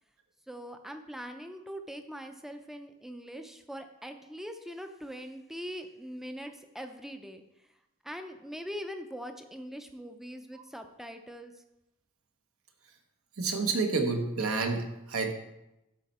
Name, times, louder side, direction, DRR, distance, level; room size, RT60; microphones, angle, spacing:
voice 1, 0.5-7.4 8.0-11.5, equal, ahead, 7 dB, 0.5 m, -42 dB
voice 2, 13.4-15.3, right 4 dB, 70° right, 3 dB, 1.1 m, -29 dB
12.0 x 4.4 x 4.2 m, 0.93 s
head